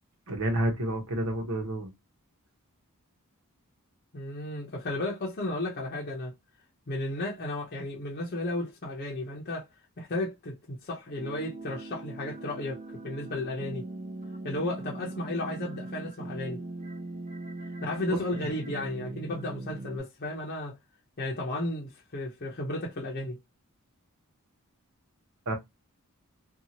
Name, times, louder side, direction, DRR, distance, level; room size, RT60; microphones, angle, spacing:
voice 1, 0.3-1.9 25.5-25.6, right 1 dB, 80° right, 1.0 m, -29 dB
voice 2, 4.1-6.3 6.9-9.7 10.0-12.8 13.0-13.9 14.4-16.6 17.8-20.7 21.2-23.4, left 1 dB, 45° left, 0.7 m, -34 dB
sound 1, 11.2-20.0, right 2 dB, 30° right, 0.5 m, -40 dB
2.7 x 2.3 x 2.8 m
head